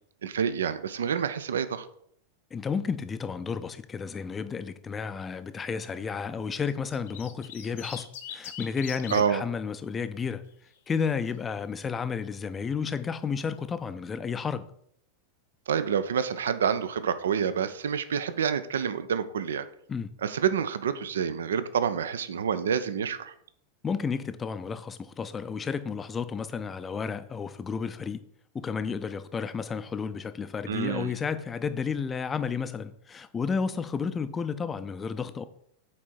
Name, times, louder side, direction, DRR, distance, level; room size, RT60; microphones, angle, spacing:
voice 1, 0.2-1.9 9.1-9.4 15.7-19.7 20.2-23.3 30.7-31.1, right 7 dB, 65° right, 0.5 m, -28 dB
voice 2, 2.5-10.4 10.9-14.7 19.9-20.1 23.8-28.2 28.5-35.4, left 6 dB, 20° left, 0.5 m, -32 dB
sound 1, 6.7-9.2 10.5-10.9, left 8 dB, 55° left, 1.0 m, -41 dB
7.4 x 4.4 x 4.3 m
figure-of-eight pair, 90°, 0 cm